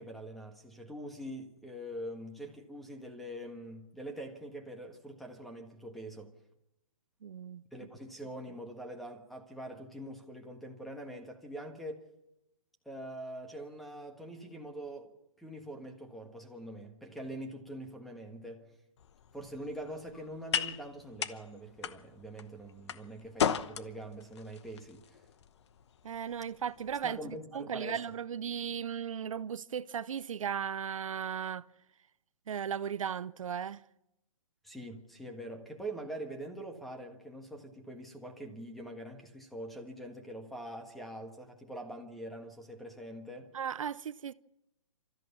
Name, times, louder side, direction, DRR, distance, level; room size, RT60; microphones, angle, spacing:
voice 1, 0.0-6.3 7.7-12.0 12.8-15.1 15.4-18.7 19.3-25.2 27.0-28.0 34.6-43.5, right 1 dB, ahead, 1.6 m, -44 dB
voice 2, 7.2-7.6 26.0-31.6 32.5-33.8 43.5-44.3, right 8 dB, 70° right, 0.7 m, -36 dB
sound 1, 19.0-27.4, left 8 dB, 55° left, 1.0 m, -38 dB
28.5 x 14.0 x 7.1 m
hypercardioid pair, 160°, 17 cm